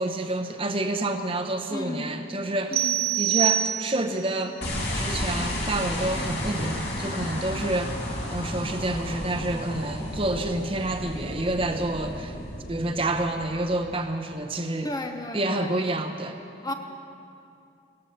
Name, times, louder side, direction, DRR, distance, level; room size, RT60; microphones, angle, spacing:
voice 1, 0.0-2.9 3.2-4.5 4.9-7.9 8.3-12.4 12.7-14.9 15.3-16.4, right 2 dB, 30° right, 5 dB, 0.8 m, -28 dB
voice 2, 1.7-2.1 2.7-3.1 14.8-15.8 16.6-16.7, left 1 dB, 20° left, 5 dB, 0.7 m, -33 dB
sound 1, 2.7-4.2, right 12 dB, 55° right, 0.7 m, -25 dB
sound 2, 4.6-14.0, left 1 dB, 60° left, 2.9 m, -32 dB
18.0 x 14.5 x 5.6 m, 2.6 s
head